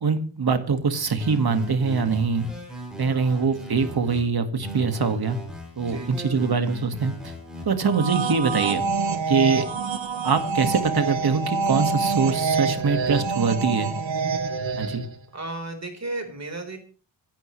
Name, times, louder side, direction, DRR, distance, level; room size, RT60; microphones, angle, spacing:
voice 1, 0.0-2.5 3.0-5.4 5.8-7.3 7.7-8.9 9.3-9.7 10.2-13.9 14.8-15.0, right 5 dB, 55° right, 8 dB, 2.0 m, -23 dB
sound 1, 1.2-4.2 4.6-7.6, equal, ahead, 6.7 m, -38 dB
voice 2, 2.9-3.8 5.9-6.2 15.3-16.8, right 2 dB, 35° right, 4 dB, 4.2 m, -35 dB
sound 2, 7.8-15.1, right 5 dB, 75° right, 1.7 m, -26 dB
26.5 x 11.5 x 3.3 m, 0.38 s
wide cardioid pair, 165°, 46 cm